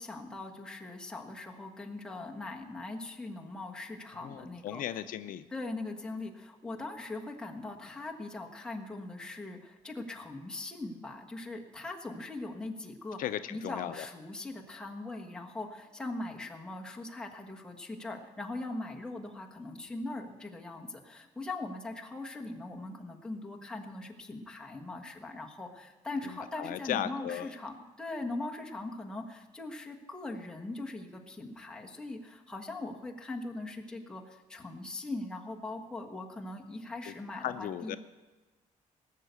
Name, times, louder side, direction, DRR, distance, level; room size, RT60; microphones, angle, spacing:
voice 1, 0.0-4.8 5.5-13.2 13.5-38.0, left 2 dB, 5° left, 0 dB, 1.4 m, -40 dB
voice 2, 4.2-5.4 13.2-14.1 26.6-27.6 37.1-38.0, left 11 dB, 75° left, 11 dB, 0.5 m, -36 dB
18.0 x 6.6 x 8.1 m, 1.2 s
cardioid pair, 150°, 14 cm